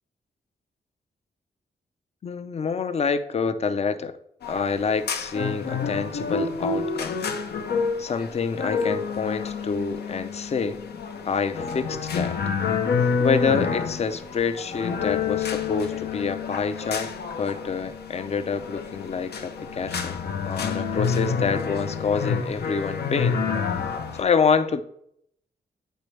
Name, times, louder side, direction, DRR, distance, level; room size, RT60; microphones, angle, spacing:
voice 1, 2.2-4.2 4.5-7.2 8.0-10.8 11.2-12.4 13.2-17.1 17.4-20.2 20.4-23.4 24.2-24.8, left 5 dB, 40° left, 10 dB, 0.5 m, -27 dB
sound 1, 4.4-24.2, left 5 dB, 75° left, 0.7 m, -28 dB
9.1 x 4.2 x 3.2 m, 0.71 s
wide cardioid pair, 120°, 17 cm